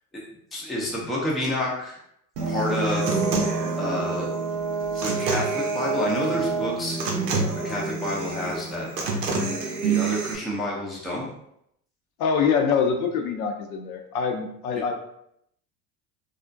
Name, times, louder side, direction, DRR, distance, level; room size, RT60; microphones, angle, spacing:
voice 1, 0.5-2.0 2.5-3.3 3.8-4.3 4.9-7.0 7.5-8.9 9.8-11.3, left 1 dB, ahead, -5 dB, 0.4 m, -29 dB
Brass instrument, 2.4-6.9, right 5 dB, 35° right, 0.7 m, -30 dB
Human voice / Acoustic guitar, 2.4-10.3, right 3 dB, 80° right, 0.7 m, -28 dB
voice 2, 12.2-14.9, left 6 dB, 65° left, 4 dB, 0.5 m, -24 dB
2.4 x 2.1 x 2.5 m, 0.74 s
hypercardioid pair, 80°, 48 cm